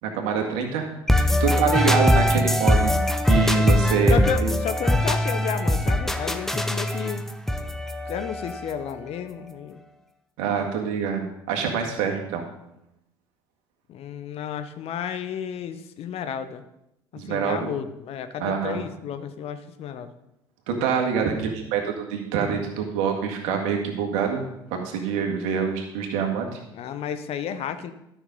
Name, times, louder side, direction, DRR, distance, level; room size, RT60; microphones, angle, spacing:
voice 1, 0.0-2.9 3.3-4.5 10.4-12.5 17.1-17.7 18.4-18.8 20.7-24.4 24.7-26.6, right 6 dB, 65° right, 3 dB, 1.9 m, -26 dB
sound 1, 1.1-8.9, left 1 dB, 5° left, 0.9 m, -22 dB
voice 2, 4.1-7.2 8.1-9.8 13.9-16.6 17.1-20.1 26.7-27.9, left 8 dB, 50° left, 10 dB, 0.9 m, -32 dB
12.5 x 6.3 x 5.3 m, 0.83 s
figure-of-eight pair, 60°, 13 cm